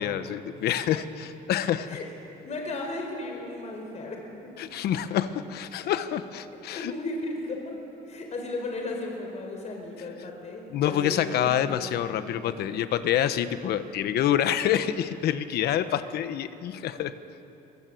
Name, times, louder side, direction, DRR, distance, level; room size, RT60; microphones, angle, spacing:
voice 1, 0.0-1.9 4.6-6.9 10.7-17.1, left 10 dB, 70° left, 12 dB, 1.2 m, -27 dB
voice 2, 2.4-4.2 6.7-7.8 8.1-11.9 12.2-12.6 16.7-16.8, left 2 dB, 45° left, 2 dB, 4.8 m, -35 dB
27.0 x 23.5 x 7.9 m, 3.0 s
cardioid pair, 110°, 17 cm